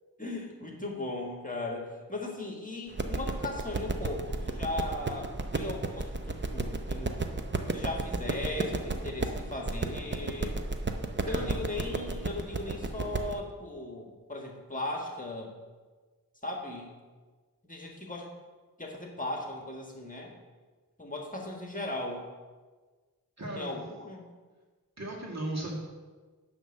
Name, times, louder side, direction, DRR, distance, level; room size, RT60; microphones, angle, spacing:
voice 1, 0.2-7.2 7.7-10.6 11.2-15.5 16.4-16.9 17.6-18.3 18.8-20.3 21.0-22.2 23.5-24.3, left 2 dB, 20° left, 0 dB, 1.5 m, -37 dB
sound 1, 2.9-13.4, right 3 dB, 30° right, 0.8 m, -33 dB
voice 2, 23.4-23.8 25.0-25.8, right 1 dB, 45° right, -3 dB, 2.3 m, -36 dB
10.5 x 3.6 x 6.5 m, 1.4 s
cardioid pair, 50°, 37 cm